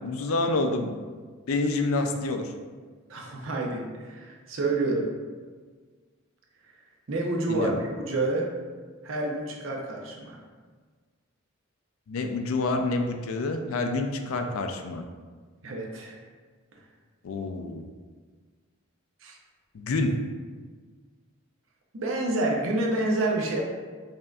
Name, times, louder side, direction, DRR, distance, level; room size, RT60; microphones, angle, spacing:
voice 1, 0.0-1.0 1.5-2.5 7.5-7.8 12.1-15.0 17.2-17.8 19.7-20.2, left 2 dB, 85° left, 5 dB, 0.4 m, -28 dB
voice 2, 3.1-5.1 7.1-8.5 9.0-10.4 15.6-16.2 19.2-19.3 21.9-23.6, right 2 dB, 70° right, -1 dB, 0.6 m, -28 dB
5.3 x 2.5 x 2.3 m, 1.5 s
head